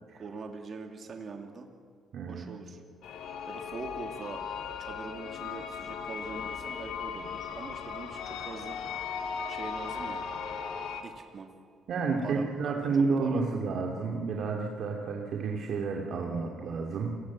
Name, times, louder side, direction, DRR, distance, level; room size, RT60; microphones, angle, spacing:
voice 1, 0.1-1.7 2.3-2.8 3.5-4.4 4.8-8.8 9.5-10.2 11.0-11.5 12.2-12.8 13.2-13.4, right 4 dB, 45° right, 3 dB, 2.7 m, -42 dB
voice 2, 2.1-2.4 11.9-17.2, right 4 dB, 60° right, 1 dB, 2.8 m, -30 dB
sound 1, 3.0-11.0, left 6 dB, 75° left, 2.8 m, -37 dB
29.0 x 19.5 x 7.5 m, 2.1 s
cardioid pair, 115°, 0 cm